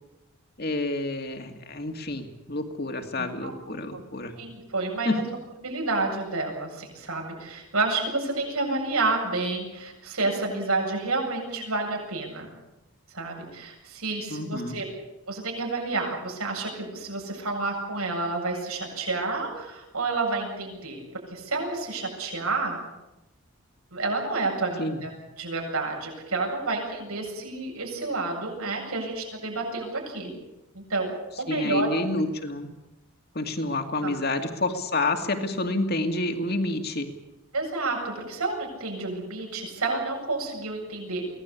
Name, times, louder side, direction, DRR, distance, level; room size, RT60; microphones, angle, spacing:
voice 1, 0.6-4.3 5.0-5.2 14.3-14.8 24.8-25.0 31.5-32.7 33.3-37.1, left 2 dB, 45° left, 6 dB, 2.4 m, -29 dB
voice 2, 3.2-3.5 3.9-4.0 4.4-5.2 5.6-12.5 13.1-14.8 15.3-21.0 21.3-22.8 23.9-25.1 25.4-30.3 30.7-31.1 31.4-31.9 34.0-34.1 37.5-41.2, right 3 dB, 80° right, 0 dB, 7.9 m, -29 dB
24.0 x 18.0 x 8.5 m, 0.95 s
head